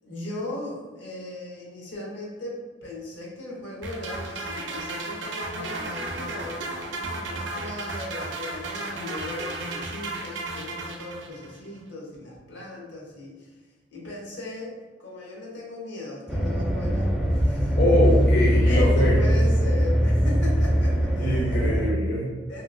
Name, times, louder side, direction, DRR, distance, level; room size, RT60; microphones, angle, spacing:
voice 1, 0.0-13.6 13.9-18.0 18.6-21.8 22.5-22.6, left 2 dB, 85° left, -3 dB, 1.0 m, -37 dB
sound 1, 3.8-11.6, right 2 dB, 80° right, 0.5 m, -34 dB
sound 2, 16.3-21.9, equal, ahead, 0.4 m, -21 dB
voice 2, 17.8-19.2 21.2-22.3, left 1 dB, 55° left, -6 dB, 0.7 m, -23 dB
3.0 x 2.9 x 2.5 m, 1.3 s
head